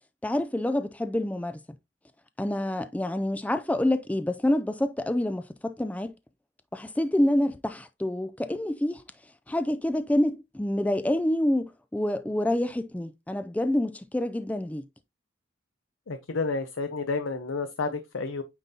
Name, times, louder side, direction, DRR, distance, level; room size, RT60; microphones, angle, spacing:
voice 1, 0.2-1.6 2.4-6.1 6.7-9.0 9.5-14.8, left 1 dB, 10° left, 0.3 m, -27 dB
voice 2, 16.1-18.4, left 4 dB, 85° left, 0.7 m, -30 dB
9.1 x 3.8 x 2.7 m
head